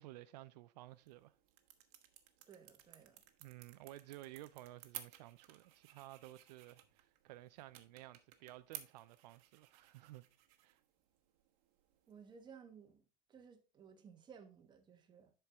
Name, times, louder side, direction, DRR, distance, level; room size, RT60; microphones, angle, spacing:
voice 1, 0.0-1.4 3.4-10.3 10.6-10.8, right 16 dB, 75° right, 0.5 m, -54 dB
sound 1, 0.9-12.4, right 13 dB, 55° right, 1.2 m, -57 dB
voice 2, 2.5-3.2 12.1-13.0 13.3-15.3, right 6 dB, 20° right, 1.1 m, -58 dB
10.5 x 4.5 x 3.4 m
supercardioid pair, 145°, 21 cm